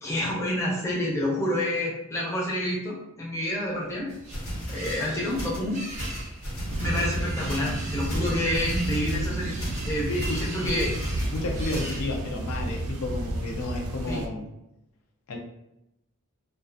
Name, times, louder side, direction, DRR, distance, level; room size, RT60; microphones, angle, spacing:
voice 1, 0.0-4.1 4.7-5.8 6.8-9.5 9.8-10.1 10.4-10.9 14.1-14.2, left 1 dB, 15° left, -4 dB, 0.5 m, -28 dB
sound 1, 3.7-12.5, right 1 dB, 35° right, 0.6 m, -41 dB
sound 2, 4.1-12.1, equal, 90° left, 1.1 m, -36 dB
sound 3, 6.7-14.3, right 1 dB, 90° right, 0.4 m, -32 dB
voice 2, 11.3-14.5 15.3-15.4, left 2 dB, 75° left, 1 dB, 0.4 m, -31 dB
2.3 x 2.2 x 2.5 m, 0.89 s
head